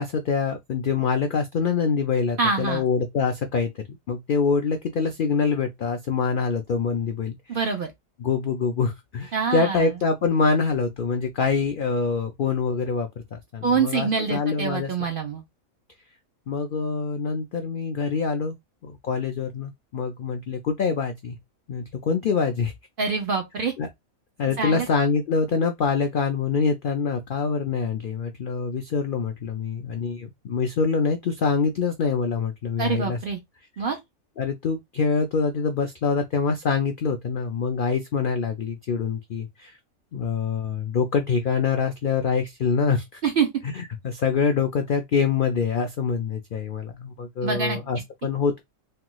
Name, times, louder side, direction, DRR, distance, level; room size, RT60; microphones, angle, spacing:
voice 1, 0.0-7.6 8.2-14.9 16.5-18.6 18.8-21.4 21.7-22.7 23.8-23.9 24.4-33.2 34.4-39.8 40.1-43.2 43.7-48.6, left 5 dB, 75° left, 0.4 m, -25 dB
voice 2, 2.4-2.8 7.5-7.9 9.3-9.9 13.6-15.4 23.0-23.7 24.6-24.9 32.8-33.4 33.8-34.0 43.2-43.5 47.4-47.8, right 5 dB, 60° right, 0.5 m, -25 dB
3.3 x 3.0 x 2.2 m
omnidirectional pair, 1.5 m